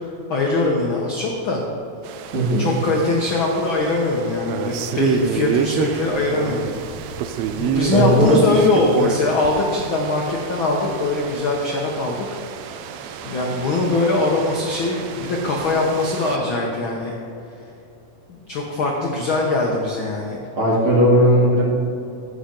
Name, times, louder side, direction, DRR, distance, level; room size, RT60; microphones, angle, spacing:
voice 1, 0.3-1.6 2.6-6.7 7.6-12.2 13.2-17.1 18.3-20.4, left 2 dB, 65° left, -1 dB, 1.2 m, -21 dB
sound 1, 2.0-16.4, right 7 dB, 90° right, 1.5 m, -29 dB
voice 2, 2.3-2.7 7.9-8.4 20.6-21.6, equal, 45° right, -4 dB, 2.6 m, -16 dB
15.5 x 6.1 x 5.3 m, 2.8 s
omnidirectional pair, 3.9 m